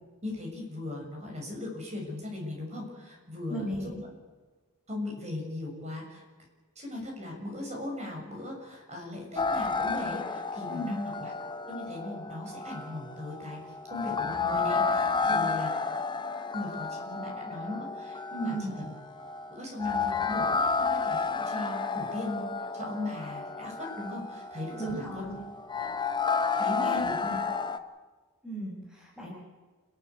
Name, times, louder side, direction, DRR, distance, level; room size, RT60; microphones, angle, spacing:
voice 1, 0.2-3.9 4.9-6.2 6.7-11.3 11.7-13.6 13.9-15.7 16.5-18.5 19.5-22.5 22.7-25.3 26.4-27.3, left 2 dB, 35° right, 0 dB, 6.7 m, -38 dB
voice 2, 3.5-4.0 10.7-11.0 15.2-15.5 18.4-18.7 24.8-25.4 26.4-27.4 28.4-29.3, right 1 dB, 5° right, -4 dB, 6.9 m, -36 dB
sound 1, 9.4-27.8, left 4 dB, 20° left, 1.0 m, -31 dB
29.0 x 12.5 x 8.3 m, 1.3 s
head